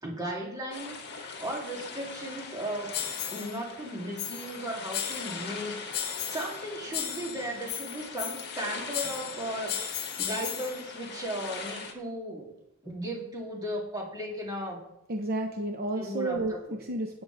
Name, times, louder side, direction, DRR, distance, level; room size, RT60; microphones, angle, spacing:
voice 1, 0.0-3.0 3.3-12.5 12.8-14.8 15.9-16.4 16.7-16.8, right 1 dB, 20° right, -3 dB, 3.2 m, -36 dB
sound 1, 0.7-11.9, left 4 dB, 50° left, 1.9 m, -41 dB
sound 2, 2.9-3.6 4.2-4.6 4.9-5.6 5.9-6.6 6.9-8.6 8.9-10.8, left 10 dB, 75° left, 1.4 m, -35 dB
voice 2, 15.1-17.2, right 2 dB, 45° right, 3 dB, 0.9 m, -31 dB
16.5 x 9.0 x 3.6 m, 0.85 s
head